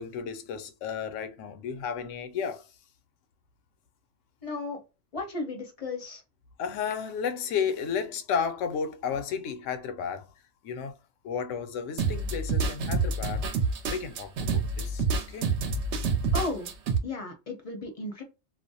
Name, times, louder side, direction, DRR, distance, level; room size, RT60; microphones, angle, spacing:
voice 1, 0.0-2.7 6.6-10.3 10.6-11.0 11.2-13.5 13.9-15.5, left 7 dB, 85° left, 0.9 m, -33 dB
voice 2, 4.4-4.8 5.1-6.2 16.3-16.7 17.0-18.2, left 3 dB, 40° left, 0.6 m, -34 dB
sound 1, 12.0-17.0, right 4 dB, 70° right, 0.9 m, -27 dB
2.5 x 2.0 x 2.6 m
omnidirectional pair, 1.2 m